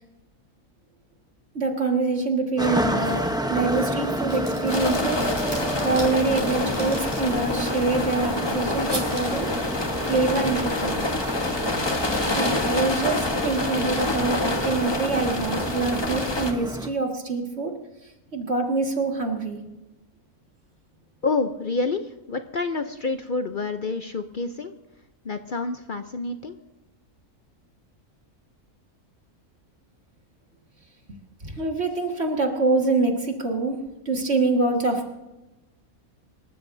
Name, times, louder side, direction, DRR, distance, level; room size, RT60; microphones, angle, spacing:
voice 1, 1.6-5.2 5.8-9.5 10.1-11.0 12.4-17.7 18.3-19.6 31.4-33.8 34.1-35.1, right 3 dB, 45° right, 2 dB, 2.1 m, -25 dB
sound 1, 2.6-16.9, equal, 5° right, 0.6 m, -30 dB
sound 2, 3.0-3.4 3.7-7.9 8.9-9.5, right 1 dB, 25° right, 4.0 m, -39 dB
sound 3, 4.7-16.5, left 2 dB, 20° left, 1.0 m, -27 dB
voice 2, 21.2-24.7 25.2-26.6, left 3 dB, 50° left, 8 dB, 0.6 m, -28 dB
26.0 x 13.0 x 2.7 m, 1.0 s
omnidirectional pair, 1.6 m